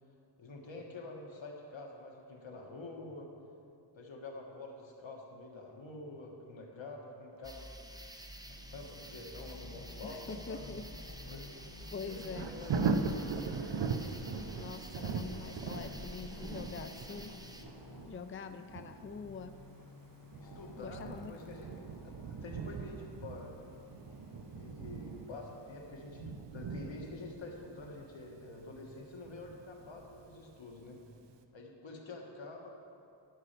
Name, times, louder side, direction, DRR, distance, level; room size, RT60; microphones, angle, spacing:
voice 1, 0.4-3.3 3.9-7.7 8.7-10.7 11.2-11.5 12.0-13.3 20.4-21.7 22.0-23.6 24.5-31.0 31.5-32.7, left 2 dB, 85° left, 0 dB, 1.6 m, -47 dB
Traffic noise roadway noise, 7.3-25.8, left 3 dB, 50° left, 0.9 m, -55 dB
sound 1, 7.4-17.6, equal, 10° right, 0.7 m, -49 dB
voice 2, 10.0-10.8 11.9-12.5 14.5-17.3 18.1-19.5 20.8-21.3, left 5 dB, 30° left, 9 dB, 0.4 m, -44 dB
Thunder, 12.0-30.8 31.3-31.4, right 4 dB, 70° right, 0.7 m, -40 dB
12.5 x 5.5 x 6.7 m, 2.5 s
wide cardioid pair, 80°, 44 cm